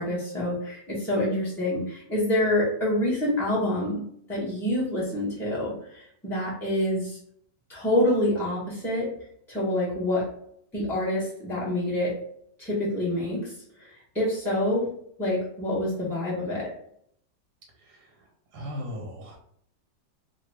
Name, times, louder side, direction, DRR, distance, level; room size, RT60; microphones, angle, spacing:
voice 1, 0.0-7.2 7.7-9.1 9.5-10.3 10.7-12.1 12.6-13.5 13.8-14.9 15.2-16.7, left 1 dB, 5° left, -8 dB, 0.4 m, -27 dB
voice 2, 17.8-18.1 18.5-19.4, left 1 dB, 85° right, 0 dB, 1.7 m, -37 dB
3.4 x 2.2 x 3.3 m, 0.67 s
omnidirectional pair, 1.9 m